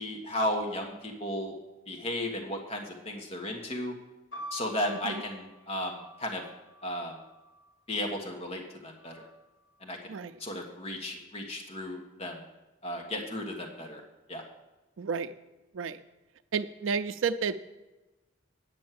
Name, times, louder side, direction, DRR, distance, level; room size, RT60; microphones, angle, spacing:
voice 1, 0.0-1.6 1.9-3.9 4.5-6.4 6.8-7.1 7.9-9.1 9.8-12.4 12.8-14.0 14.3-14.4, left 1 dB, 35° left, 1 dB, 1.4 m, -34 dB
sound 1, 4.3-8.2 9.0-9.7, equal, 75° left, 4.0 m, -47 dB
voice 2, 4.9-5.2 10.1-10.4 15.0-15.3 15.7-16.0 16.5-17.8, right 5 dB, 85° right, 11 dB, 0.4 m, -32 dB
9.6 x 6.3 x 7.5 m, 1.1 s
head